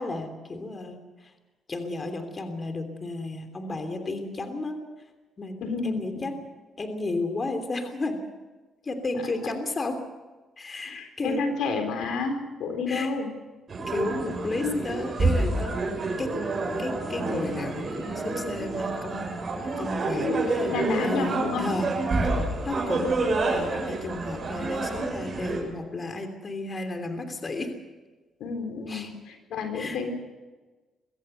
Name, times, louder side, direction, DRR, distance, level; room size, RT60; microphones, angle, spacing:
voice 1, 0.0-1.3 1.7-4.8 5.4-5.6 5.8-6.3 6.8-8.2 8.8-10.0 10.6-11.5 12.9-13.1 13.9-15.8 16.2-16.3 16.8-19.3 19.6-21.9 22.2-22.4 22.6-23.1 23.5-27.7 28.9-29.1 29.7-30.0, left 2 dB, 35° left, 7 dB, 3.1 m, -33 dB
voice 2, 5.6-6.3 10.9-13.3 14.6-14.8 20.3-21.6 22.3-22.4 28.4-30.1, left 4 dB, 80° left, 6 dB, 4.0 m, -30 dB
sound 1, 13.7-25.6, right 2 dB, 40° right, 7.0 m, -28 dB
23.5 x 15.5 x 8.1 m, 1.2 s
cardioid pair, 90°, 0 cm